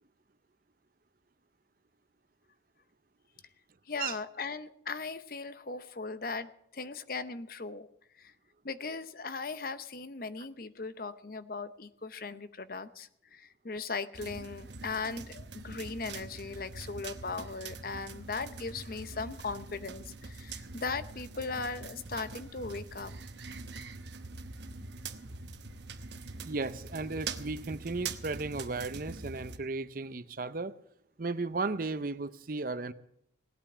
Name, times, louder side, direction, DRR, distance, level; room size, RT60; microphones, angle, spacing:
voice 1, 3.9-7.9 8.2-8.3 8.6-23.1, left 4 dB, 50° left, 0.7 m, -38 dB
sound 1, 14.1-29.6, right 4 dB, 70° right, 1.0 m, -44 dB
voice 2, 26.4-30.7 31.2-32.9, right 3 dB, 50° right, 0.7 m, -35 dB
18.0 x 8.8 x 7.2 m
head